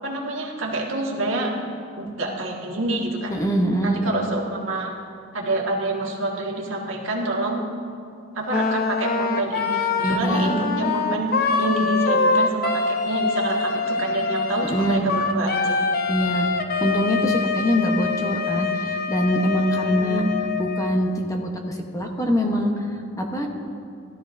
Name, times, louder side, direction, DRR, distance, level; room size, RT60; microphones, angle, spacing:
voice 1, 0.0-1.6 2.0-3.3 3.8-4.9 5.3-7.6 8.3-15.9 19.9-20.3, right 1 dB, 70° right, -1 dB, 1.7 m, -27 dB
voice 2, 3.3-4.0 10.0-10.5 14.6-15.0 16.1-16.5 16.8-20.2 20.6-22.9 23.2-23.5, equal, 15° left, 2 dB, 0.9 m, -23 dB
Wind instrument woodwind instrument, 8.5-21.0, left 4 dB, 50° left, 0.6 m, -24 dB
16.5 x 12.5 x 2.6 m, 2.4 s
head